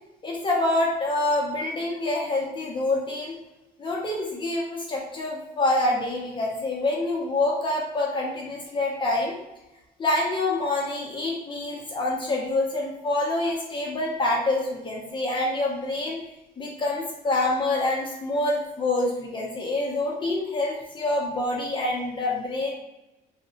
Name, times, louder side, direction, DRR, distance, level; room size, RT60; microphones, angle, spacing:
voice 1, 0.2-3.3 3.8-9.3 10.0-16.2 16.6-22.7, left 2 dB, 30° left, -3 dB, 0.6 m, -26 dB
2.8 x 2.2 x 2.8 m, 0.99 s
cardioid pair, 110°, 17 cm